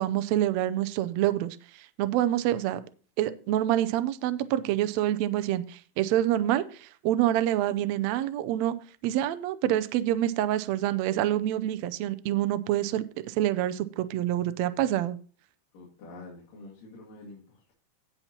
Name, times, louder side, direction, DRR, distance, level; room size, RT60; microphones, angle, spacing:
voice 1, 0.0-1.6 2.0-2.8 3.2-8.8 9.0-15.2, right 12 dB, 85° right, 12 dB, 1.5 m, -27 dB
voice 2, 15.7-17.7, left 2 dB, 80° left, -4 dB, 3.9 m, -47 dB
17.0 x 5.7 x 2.9 m, 0.40 s
omnidirectional pair, 3.8 m